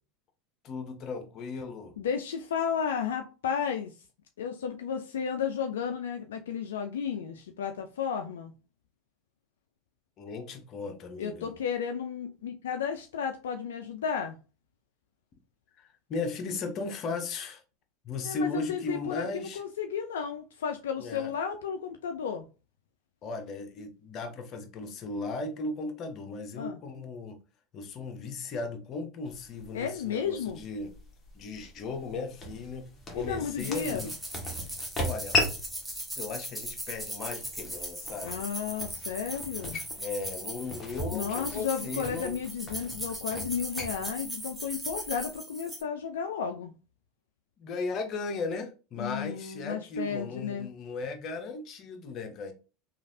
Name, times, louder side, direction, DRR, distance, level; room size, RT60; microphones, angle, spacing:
voice 1, 0.6-2.0 10.2-11.5 15.8-17.6 18.0-19.6 21.0-21.3 23.2-27.4 27.7-31.0 31.3-34.2 35.0-35.4 36.1-38.5 40.0-42.4 47.6-52.5, left 3 dB, 45° left, 0.7 m, -36 dB
voice 2, 2.0-3.9 4.4-8.5 11.2-14.4 18.2-22.4 26.6-26.8 29.7-30.6 33.1-34.0 38.2-39.8 41.1-46.7 49.0-50.7, left 7 dB, 85° left, 0.3 m, -33 dB
sound 1, 29.3-45.4, left 2 dB, 30° left, 1.0 m, -38 dB
sound 2, 33.6-45.8, right 1 dB, 10° right, 0.8 m, -39 dB
3.1 x 2.4 x 2.6 m
hypercardioid pair, 90°, 0 cm